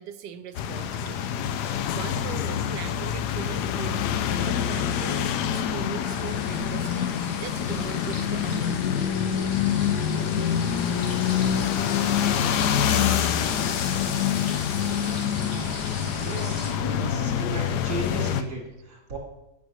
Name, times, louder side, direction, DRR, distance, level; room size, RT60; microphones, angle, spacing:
voice 1, 0.0-4.0 4.4-8.8 12.4-12.7, right 9 dB, 85° right, 11 dB, 1.3 m, -40 dB
sound 1, 0.6-18.4, left 8 dB, 75° left, 1.1 m, -26 dB
sound 2, 6.0-16.7, left 1 dB, 40° left, 1.9 m, -40 dB
voice 2, 16.2-19.2, right 2 dB, 60° right, -2 dB, 2.9 m, -35 dB
16.0 x 6.4 x 3.0 m, 0.96 s
omnidirectional pair, 1.8 m